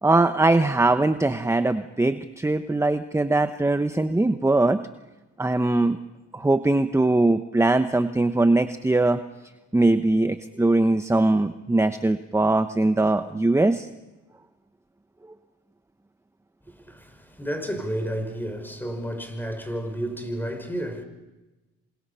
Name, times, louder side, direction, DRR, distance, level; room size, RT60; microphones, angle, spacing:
voice 1, 0.0-4.8 5.4-6.0 6.3-9.2 9.7-13.9, right 2 dB, 10° right, 1.0 m, -21 dB
voice 2, 16.7-21.0, equal, 5° left, 5.7 m, -31 dB
28.0 x 26.0 x 5.7 m
cardioid pair, 90°, 30 cm